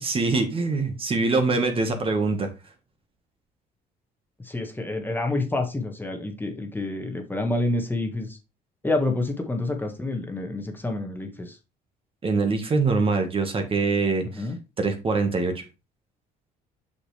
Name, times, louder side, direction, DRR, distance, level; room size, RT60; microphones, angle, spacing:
voice 1, 0.0-2.5 12.2-14.4 14.8-15.6, right 3 dB, 30° right, 6 dB, 1.5 m, -24 dB
voice 2, 4.4-8.4 8.8-11.6 14.2-14.6, left 2 dB, 10° left, 3 dB, 1.4 m, -28 dB
6.3 x 6.1 x 3.3 m, 0.28 s
cardioid pair, 110°, 17 cm